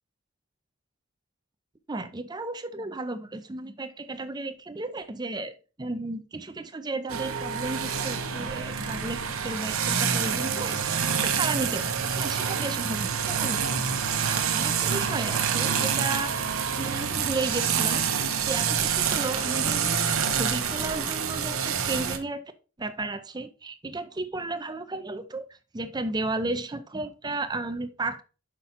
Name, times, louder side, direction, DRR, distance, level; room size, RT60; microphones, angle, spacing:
voice 1, 1.9-16.4 16.8-18.1 18.5-22.4 22.8-28.2, right 2 dB, 20° right, 0.5 m, -34 dB
sound 1, 7.1-22.2, right 7 dB, 75° right, 1.0 m, -27 dB
5.8 x 5.4 x 4.2 m
head